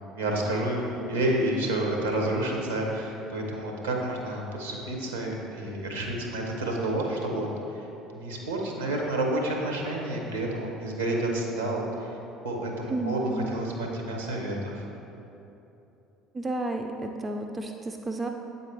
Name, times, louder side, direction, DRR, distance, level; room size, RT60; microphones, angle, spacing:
voice 1, 0.1-7.9 8.1-12.2 12.4-14.8, right 1 dB, 75° right, 0 dB, 0.8 m, -29 dB
voice 2, 12.9-13.4 16.3-18.3, right 2 dB, 25° right, 4 dB, 0.3 m, -32 dB
7.9 x 4.0 x 3.3 m, 2.9 s
figure-of-eight pair, 60°, 0 cm